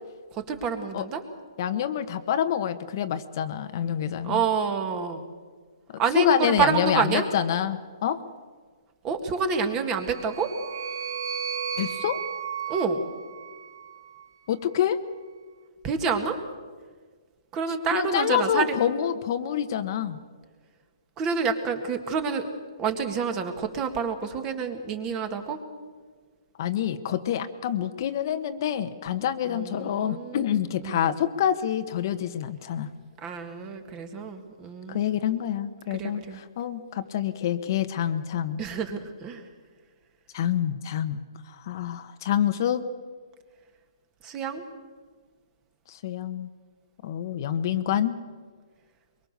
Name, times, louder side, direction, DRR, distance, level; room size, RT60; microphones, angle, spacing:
voice 1, 0.3-1.2 4.2-5.2 6.0-7.3 9.0-10.5 12.7-13.0 15.8-16.4 17.5-18.8 21.2-22.5 22.8-25.6 29.5-30.4 30.8-31.1 33.2-35.5 35.9-36.4 38.6-39.4 44.2-44.6, right 5 dB, 20° right, 7 dB, 1.9 m, -28 dB
voice 2, 1.6-4.4 5.9-8.2 11.8-12.2 14.5-15.0 17.9-20.2 26.6-32.9 34.9-38.6 40.3-41.2 41.5-42.8 45.9-46.5 47.0-48.2, left 10 dB, 45° left, 9 dB, 1.2 m, -27 dB
sound 1, 9.9-14.3, right 7 dB, 55° right, 2.2 m, -34 dB
23.5 x 23.5 x 6.8 m, 1.5 s
hypercardioid pair, 160°, 3 cm